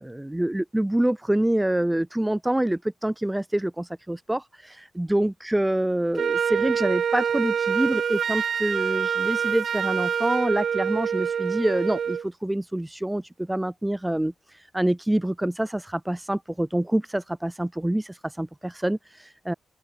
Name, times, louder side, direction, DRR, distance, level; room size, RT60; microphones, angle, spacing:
voice 1, 0.0-19.5, right 1 dB, 10° right, 6.2 m, -26 dB
Wind instrument woodwind instrument, 6.2-12.3, right 7 dB, 65° right, 2.7 m, -26 dB
open air
cardioid pair, 110°, 0 cm